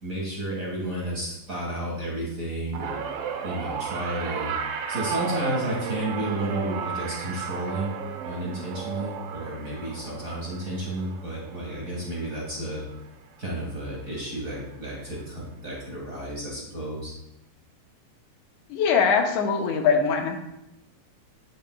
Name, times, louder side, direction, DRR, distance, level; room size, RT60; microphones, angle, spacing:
voice 1, 0.0-3.0 3.4-4.5 4.9-7.9 8.2-12.8 13.4-17.1, right 1 dB, 35° right, -4 dB, 1.7 m, -32 dB
sound 1, 2.7-13.2 13.5-13.9 15.0-15.1, right 7 dB, 90° right, 1.2 m, -34 dB
voice 2, 18.7-20.4, left 6 dB, 85° left, 3 dB, 2.3 m, -22 dB
10.5 x 6.6 x 2.3 m, 0.87 s
omnidirectional pair, 3.3 m